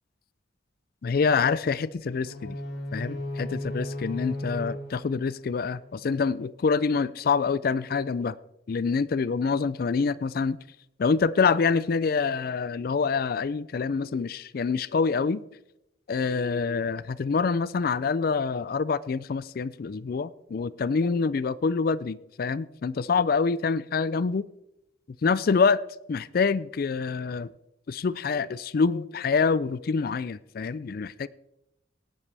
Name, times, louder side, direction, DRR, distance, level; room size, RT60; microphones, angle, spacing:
voice 1, 1.0-2.6 2.9-8.4 8.7-10.6 11.0-15.4 16.1-24.4 25.2-25.8 26.1-27.5 27.9-31.3, left 5 dB, 50° left, 18 dB, 0.4 m, -26 dB
sound 1, 2.2-6.2, left 1 dB, 80° left, 5.1 m, -36 dB
18.0 x 11.0 x 3.4 m, 0.84 s
head